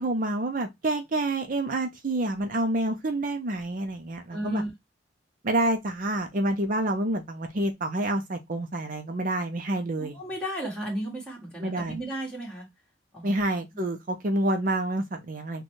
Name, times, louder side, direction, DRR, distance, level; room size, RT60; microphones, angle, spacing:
voice 1, 0.0-4.6 5.4-10.2 11.6-12.0 13.2-15.6, right 1 dB, 45° right, 0.5 m, -28 dB
voice 2, 4.3-4.7 10.0-12.7 13.1-13.4, right 1 dB, 5° left, 1.8 m, -33 dB
6.3 x 2.3 x 3.1 m
head